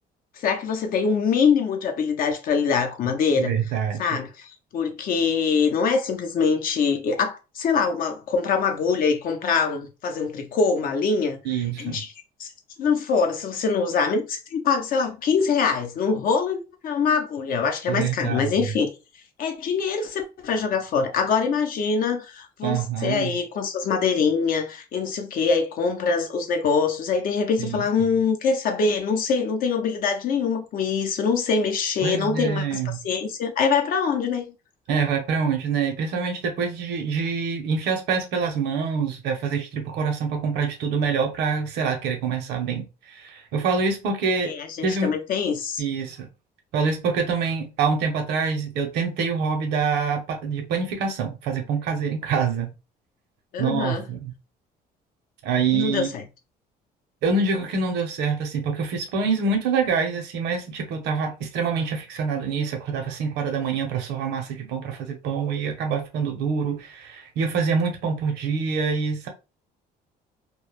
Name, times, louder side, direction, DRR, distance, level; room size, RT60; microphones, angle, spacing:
voice 1, 0.4-3.5 4.0-11.4 11.8-12.1 12.4-12.5 12.8-18.9 19.4-34.5 44.4-45.8 53.5-54.0 55.7-56.2, left 5 dB, 55° left, 0.6 m, -24 dB
voice 2, 3.4-4.1 11.4-12.0 17.9-18.7 22.6-23.4 27.6-27.8 32.0-33.0 34.9-42.9 43.1-44.5 44.8-45.2 45.8-46.3 46.7-52.7 53.6-54.3 55.4-56.1 57.2-69.3, right 5 dB, 85° right, 0.7 m, -26 dB
2.2 x 2.1 x 3.1 m
cardioid pair, 110°, 17 cm